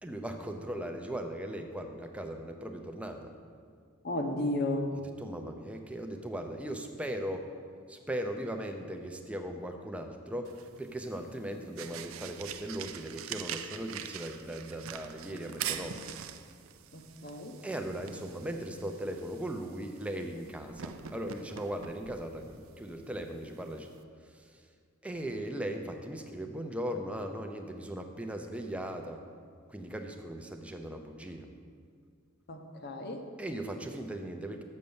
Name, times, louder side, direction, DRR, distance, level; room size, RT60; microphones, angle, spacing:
voice 1, 0.0-3.3 5.2-7.5 7.9-16.0 17.6-23.9 24.2-24.7 25.0-29.2 29.7-31.5 33.4-34.6, right 1 dB, 5° right, 4 dB, 0.5 m, -38 dB
voice 2, 4.0-4.9 16.9-17.5 32.5-33.2, left 1 dB, 50° left, 4 dB, 0.8 m, -33 dB
sound 1, 10.4-24.0, right 9 dB, 80° right, 0.5 m, -44 dB
6.7 x 6.5 x 7.0 m, 2.1 s
head